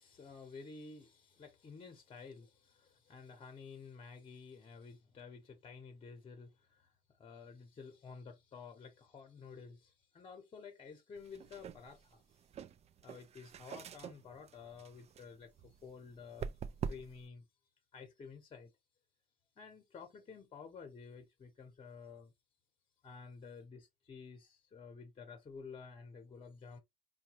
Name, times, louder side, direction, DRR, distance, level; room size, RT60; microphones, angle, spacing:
voice 1, 0.0-6.9 7.2-12.4 13.0-17.5 17.9-18.7 19.6-22.3 23.0-26.8, left 5 dB, 35° left, 0.9 m, -52 dB
sound 1, 11.2-17.3, right 7 dB, 40° right, 0.4 m, -46 dB
4.5 x 2.3 x 2.9 m
cardioid pair, 110°, 17 cm